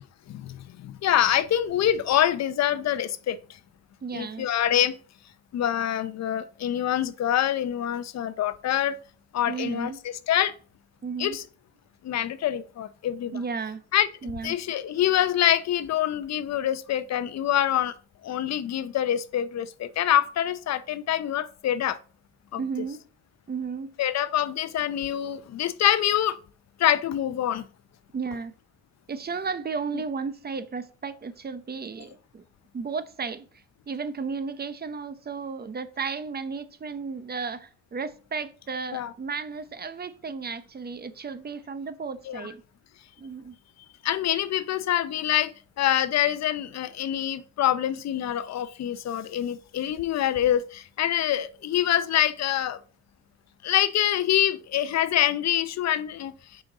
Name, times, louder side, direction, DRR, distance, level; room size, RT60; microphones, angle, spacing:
voice 1, 0.3-3.4 4.1-4.9 5.5-9.0 9.3-9.9 10.3-10.5 11.2-11.4 12.0-13.4 13.9-17.9 18.2-22.0 22.5-22.6 24.0-26.4 26.8-27.6 29.9-30.0 38.9-39.1 42.3-42.5 44.0-52.8 53.6-56.6, left 11 dB, 60° left, 0.6 m, -25 dB
voice 2, 4.0-4.5 9.5-10.0 11.0-11.4 13.3-13.8 14.2-14.6 22.5-23.0 23.5-23.9 28.1-28.5 29.1-32.4 32.7-42.6 43.2-43.6, right 5 dB, 30° right, 0.7 m, -34 dB
6.2 x 5.1 x 4.0 m
cardioid pair, 90°, 30 cm